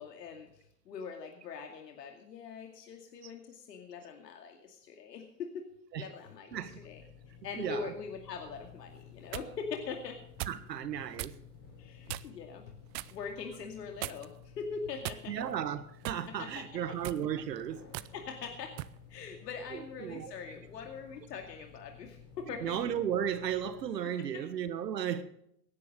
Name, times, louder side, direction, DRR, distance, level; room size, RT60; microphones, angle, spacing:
voice 1, 0.0-5.6 5.9-7.0 7.4-10.2 11.8-12.8 13.1-15.3 16.3-16.6 18.1-18.7 19.1-22.8 24.2-24.4, left 5 dB, 85° left, 2.4 m, -42 dB
sound 1, 6.5-23.9, left 7 dB, 30° left, 5.8 m, -54 dB
voice 2, 6.5-6.8 7.6-7.9 10.5-11.3 15.3-17.8 19.7-20.5 22.6-25.2, right 9 dB, 90° right, 1.6 m, -35 dB
sound 2, 9.0-9.5 10.4-10.7 11.2-11.4 12.1-12.4 12.9-13.2 14.0-14.4 15.0-15.5 16.0-16.3 16.9-17.2 17.9-18.1 18.8-19.0, right 18 dB, 40° right, 0.6 m, -39 dB
17.0 x 10.5 x 5.2 m
hypercardioid pair, 135°, 48 cm